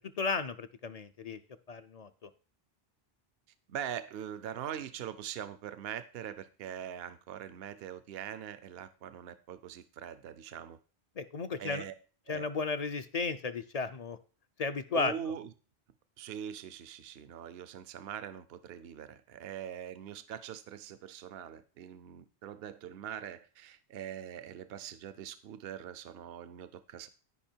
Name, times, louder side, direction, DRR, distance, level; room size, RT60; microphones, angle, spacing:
voice 1, 0.2-1.4 1.7-2.3 11.2-11.8 12.3-14.2 14.6-15.1, left 4 dB, 50° left, 11 dB, 0.5 m, -34 dB
voice 2, 3.7-10.8 11.6-11.9 12.3-12.5 14.9-15.5 16.2-27.1, right 9 dB, 75° right, 13 dB, 0.8 m, -42 dB
12.0 x 5.3 x 4.4 m, 0.37 s
omnidirectional pair, 1.1 m